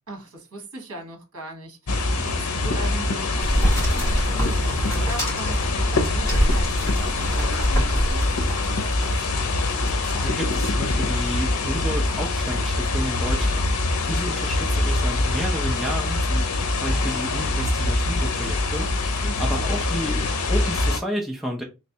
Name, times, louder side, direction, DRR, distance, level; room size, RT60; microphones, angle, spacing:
voice 1, 0.1-8.6 19.2-19.8, right 1 dB, 70° right, 1.2 m, -39 dB
sound 1, 1.9-21.0, left 2 dB, 90° left, 0.6 m, -24 dB
sound 2, 3.4-9.3 9.7-10.3 10.6-10.8, equal, 15° left, 1.8 m, -26 dB
voice 2, 10.1-13.7 14.1-16.5 16.8-21.6, equal, ahead, 0.6 m, -31 dB
3.2 x 3.2 x 2.8 m
head